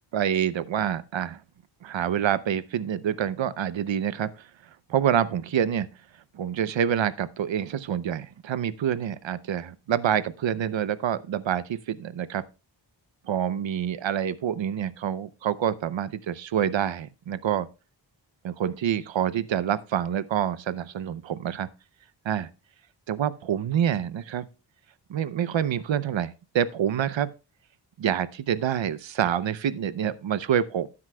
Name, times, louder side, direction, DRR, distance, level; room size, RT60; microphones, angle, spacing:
voice 1, 0.1-1.4 1.8-4.5 4.9-5.9 6.3-12.4 13.3-17.7 18.4-21.7 22.2-22.5 23.1-24.5 25.1-27.3 28.0-30.9, right 9 dB, 80° right, 0.7 m, -27 dB
12.5 x 9.7 x 2.2 m
wide cardioid pair, 105°, 45 cm